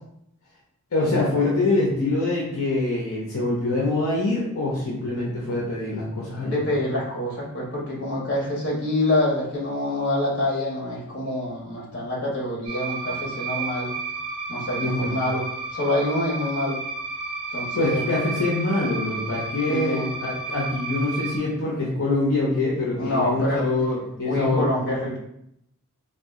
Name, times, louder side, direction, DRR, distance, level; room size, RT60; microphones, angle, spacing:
voice 1, 0.9-6.6 14.8-15.2 17.7-24.7, left 2 dB, 75° left, -4 dB, 0.7 m, -24 dB
voice 2, 6.4-13.9 14.5-15.4 15.7-16.8 17.5-18.0 19.7-20.1 23.0-23.7 24.2-25.2, left 1 dB, 55° left, -3 dB, 1.3 m, -26 dB
sound 1, 12.6-21.4, right 3 dB, 25° right, 1.0 m, -32 dB
3.9 x 2.4 x 3.6 m, 0.77 s
head